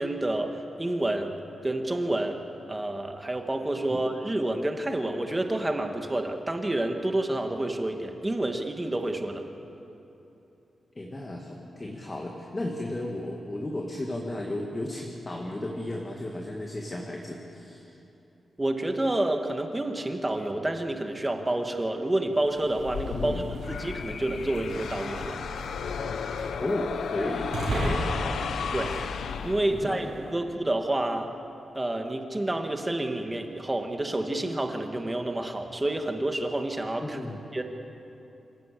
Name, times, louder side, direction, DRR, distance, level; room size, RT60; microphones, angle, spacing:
voice 1, 0.0-1.3 1.6-2.4 2.7-9.4 18.6-25.4 28.7-28.9 29.4-31.3 31.7-37.2 37.5-37.6, right 1 dB, 15° right, 4 dB, 1.7 m, -29 dB
voice 2, 11.0-17.8 23.1-23.4 26.6-28.4 28.8-29.0 29.7-30.1 37.0-37.4, left 1 dB, 20° left, 0 dB, 2.0 m, -34 dB
sound 1, 22.4-30.2, right 2 dB, 75° right, 5.8 m, -37 dB
sound 2, 22.8-30.0, left 6 dB, 90° left, 0.7 m, -34 dB
26.5 x 16.0 x 8.4 m, 2.9 s
wide cardioid pair, 150°, 0 cm